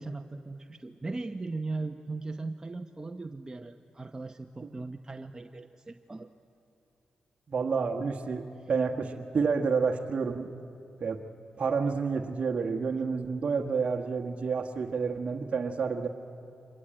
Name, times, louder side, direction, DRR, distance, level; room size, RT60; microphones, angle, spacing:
voice 1, 0.0-6.3, right 3 dB, 25° right, 6 dB, 0.9 m, -38 dB
voice 2, 7.5-10.5 11.0-11.2 11.6-16.1, right 5 dB, 55° right, 1 dB, 1.3 m, -29 dB
25.0 x 21.0 x 8.9 m, 2.7 s
supercardioid pair, 50°, 3 cm